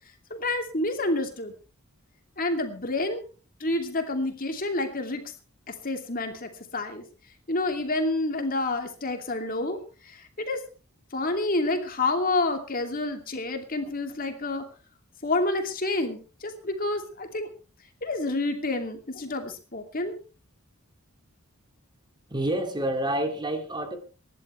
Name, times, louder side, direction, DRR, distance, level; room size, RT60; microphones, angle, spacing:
voice 1, 0.3-1.5 2.4-3.2 3.6-5.2 5.7-7.0 7.5-9.8 10.1-10.6 11.1-14.7 15.2-17.5 18.0-20.1, left 2 dB, 40° left, 5 dB, 2.6 m, -28 dB
voice 2, 22.3-24.0, right 1 dB, 20° right, 5 dB, 2.5 m, -28 dB
25.5 x 11.5 x 3.3 m, 0.35 s
head